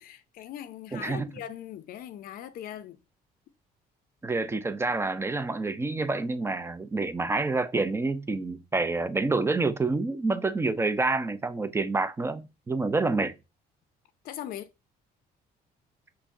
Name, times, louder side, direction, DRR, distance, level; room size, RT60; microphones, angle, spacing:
voice 1, 0.0-3.0 14.2-14.7, left 11 dB, 60° left, 0.4 m, -40 dB
voice 2, 0.9-1.3 4.2-13.4, right 3 dB, 15° right, 0.4 m, -28 dB
5.6 x 2.0 x 2.5 m
cardioid pair, 110°, 17 cm